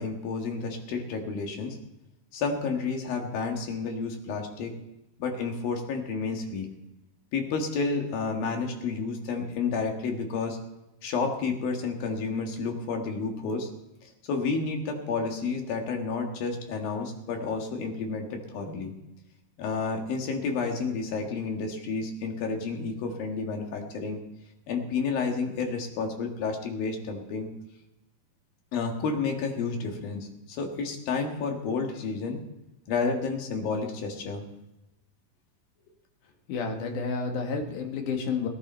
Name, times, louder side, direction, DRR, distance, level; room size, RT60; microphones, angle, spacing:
voice 1, 0.0-1.8 2.3-4.7 5.2-6.7 7.3-10.6 11.0-13.7 14.0-18.9 19.6-24.2 24.7-27.5 28.7-32.4 32.9-34.4, left 4 dB, 80° left, 2 dB, 3.5 m, -30 dB
voice 2, 36.5-38.5, left 5 dB, 65° left, 3 dB, 2.8 m, -30 dB
18.5 x 11.0 x 4.3 m, 0.95 s
omnidirectional pair, 4.0 m